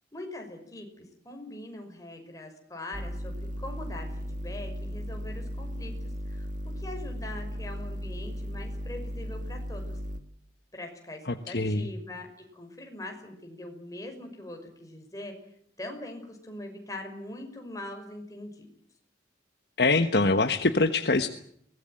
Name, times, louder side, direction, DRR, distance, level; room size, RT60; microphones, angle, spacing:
voice 1, 0.1-6.5 6.8-10.0 10.7-15.5 15.8-18.7, left 1 dB, 20° left, 3 dB, 5.8 m, -42 dB
sound 1, 2.9-10.2, equal, 45° right, 2.0 m, -36 dB
voice 2, 11.5-11.9 19.8-21.3, left 3 dB, 65° left, 8 dB, 1.3 m, -23 dB
23.0 x 19.0 x 9.1 m, 0.69 s
head